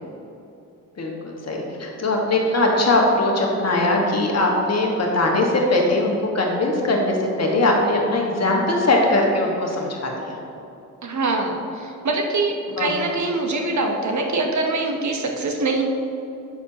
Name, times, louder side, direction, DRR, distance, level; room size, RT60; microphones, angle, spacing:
voice 1, 1.0-10.4 12.8-13.1, left 2 dB, 40° left, 0 dB, 1.6 m, -21 dB
voice 2, 11.0-15.8, right 2 dB, 45° right, 2 dB, 1.1 m, -24 dB
8.2 x 6.7 x 2.9 m, 2.7 s
supercardioid pair, 50°, 38 cm